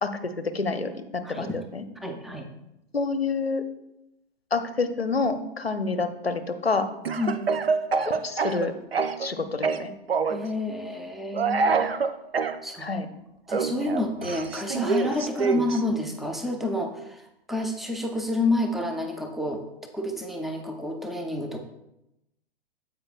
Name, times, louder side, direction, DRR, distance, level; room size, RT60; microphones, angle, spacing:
voice 1, 0.0-1.8 2.9-3.6 4.5-6.9 8.0-8.7 9.2-9.9 12.8-13.1, left 4 dB, 85° left, 10 dB, 0.7 m, -28 dB
voice 2, 1.2-1.6 2.0-2.5 7.2-7.5 10.2-11.9 12.6-12.9 13.5-17.2 17.5-19.7 19.9-21.6, left 2 dB, ahead, 5 dB, 0.4 m, -29 dB
Speech / Cough, 7.1-9.3 9.6-10.4 11.3-12.6 13.5-15.8, right 5 dB, 80° right, 0.6 m, -26 dB
15.0 x 5.1 x 2.3 m, 0.88 s
figure-of-eight pair, 105°, 30 cm